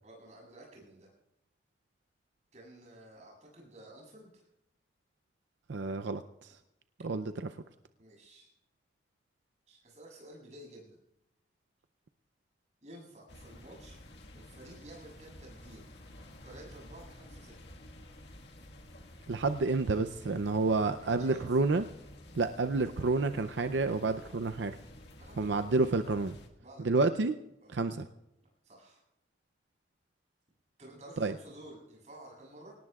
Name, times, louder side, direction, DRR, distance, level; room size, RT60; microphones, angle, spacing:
voice 1, 0.0-1.1 2.5-4.5 8.0-8.5 9.7-11.0 12.8-14.0 14.3-15.9 16.4-17.6 21.0-21.6 25.2-25.6 26.6-27.0 27.6-27.8 28.6-29.0 30.8-32.8, right 1 dB, 40° right, -1 dB, 7.9 m, -52 dB
voice 2, 5.7-6.6 7.0-7.6 19.3-21.9 22.3-24.7 25.4-26.4 26.8-27.4 27.7-28.1 31.2-31.3, right 3 dB, 85° right, 10 dB, 0.6 m, -29 dB
sound 1, 13.3-26.5, left 1 dB, 70° left, 1.6 m, -52 dB
24.5 x 18.5 x 2.4 m, 0.87 s
head